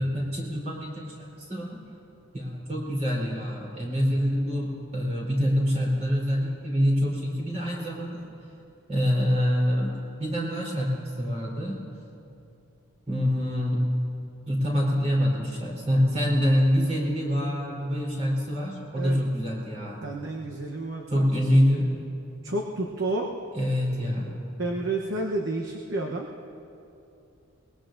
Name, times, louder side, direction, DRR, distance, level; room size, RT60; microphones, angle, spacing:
voice 1, 0.0-1.8 2.3-8.2 8.9-10.9 11.2-11.8 13.1-13.9 14.5-20.1 21.1-22.0 23.5-24.4, equal, 30° right, -4 dB, 3.8 m, -25 dB
voice 2, 20.0-21.5 22.4-23.3 24.6-26.3, right 2 dB, 60° right, 0 dB, 0.9 m, -30 dB
23.0 x 20.5 x 2.6 m, 2.7 s
head